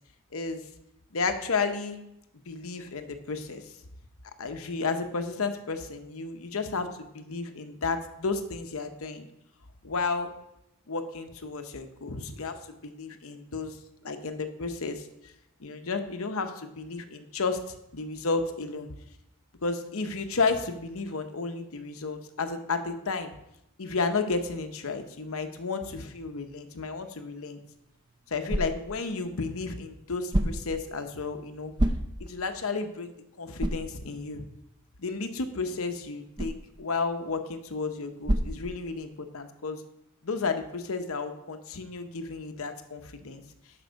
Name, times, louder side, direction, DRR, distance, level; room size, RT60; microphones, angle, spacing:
voice 1, 0.3-0.6 1.1-2.0 2.5-3.7 4.4-9.3 9.8-10.3 10.9-13.8 14.0-15.3 15.6-18.9 19.6-23.3 23.8-27.6 28.3-31.7 32.2-34.4 35.0-39.8 40.2-43.4, left 4 dB, 70° left, 7 dB, 0.9 m, -32 dB
sound 1, 27.6-39.3, right 1 dB, 20° right, 0.6 m, -34 dB
8.0 x 6.0 x 5.2 m, 0.83 s
head